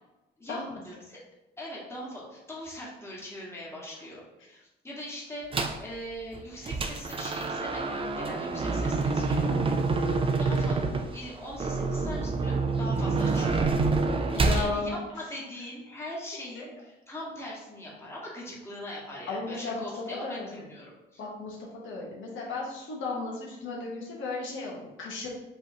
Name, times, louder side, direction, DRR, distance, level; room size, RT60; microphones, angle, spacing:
voice 1, 0.4-1.2 1.6-9.5 10.4-13.6 14.5-21.3, left 1 dB, 15° left, -5 dB, 1.4 m, -41 dB
sound 1, 5.5-5.9 6.3-14.7, right 3 dB, 25° right, 0.5 m, -27 dB
voice 2, 9.4-9.7 14.3-14.9 16.6-16.7 19.3-19.8 20.2-20.5 21.2-21.6 21.8-25.3, left 3 dB, 75° left, -2 dB, 1.1 m, -34 dB
5.2 x 3.2 x 2.8 m, 1.0 s
cardioid pair, 90°, 20 cm